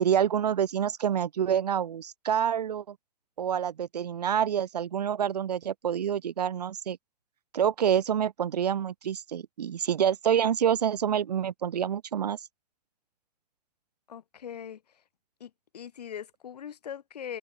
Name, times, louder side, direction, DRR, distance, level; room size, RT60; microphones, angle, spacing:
voice 1, 0.0-3.0 3.4-7.0 7.5-12.4, right 9 dB, 85° right, 2.0 m, -27 dB
voice 2, 14.1-14.8 15.4-17.4, left 8 dB, 85° left, 5.4 m, -41 dB
hypercardioid pair, 120°, 20 cm